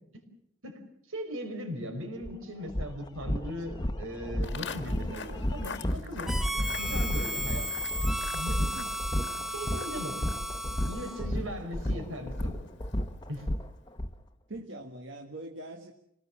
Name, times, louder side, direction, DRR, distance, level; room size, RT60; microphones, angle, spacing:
voice 1, 1.1-6.3 6.8-7.7 8.3-8.7 9.5-10.3 10.8-12.7 13.3-13.5, equal, 80° right, 5 dB, 5.1 m, -38 dB
sound 1, 2.2-2.3 2.7-14.1, left 1 dB, 20° left, 1.0 m, -32 dB
Walk footsteps, 4.4-13.6, left 5 dB, 60° left, 1.6 m, -46 dB
Harmonica, 6.3-11.3, right 1 dB, ahead, 0.8 m, -35 dB
voice 2, 14.5-15.9, right 2 dB, 60° right, 4 dB, 1.7 m, -42 dB
26.5 x 19.0 x 7.3 m, 0.77 s
head